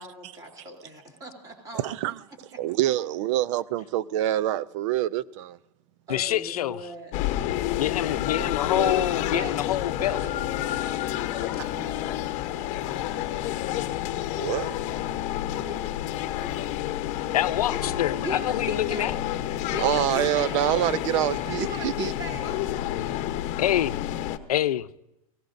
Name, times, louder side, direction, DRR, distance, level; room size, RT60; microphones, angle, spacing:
voice 1, 0.0-1.9 6.1-7.1 9.3-9.7 10.0-10.7 11.2-13.8 14.1-14.5 15.5-15.9 16.2-16.8 17.3-19.4 19.6-23.4, equal, 20° right, 3.3 m, -40 dB
voice 2, 1.7-2.2 2.6-5.6 8.1-9.1 14.3-14.8 19.8-22.1, right 13 dB, 55° right, 0.6 m, -26 dB
voice 3, 6.1-6.8 7.7-10.2 17.3-19.1 23.0-24.0 24.5-24.9, left 12 dB, 85° left, 0.7 m, -27 dB
sound 1, 7.1-24.4, left 13 dB, 40° left, 1.0 m, -29 dB
29.5 x 17.5 x 2.6 m
supercardioid pair, 135°, 19 cm